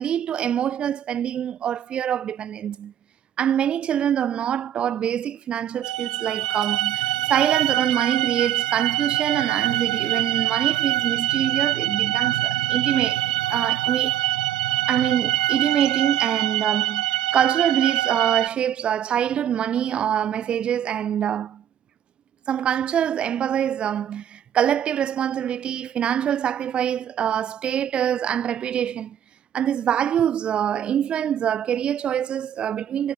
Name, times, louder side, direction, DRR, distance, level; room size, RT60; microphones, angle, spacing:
voice 1, 0.0-2.9 3.4-13.2 13.5-14.2 14.9-21.6 22.5-29.2 29.5-33.1, right 9 dB, 25° right, 0.9 m, -25 dB
sound 1, 5.8-18.5, right 15 dB, 85° right, 0.4 m, -24 dB
supercardioid pair, 145°, 4 cm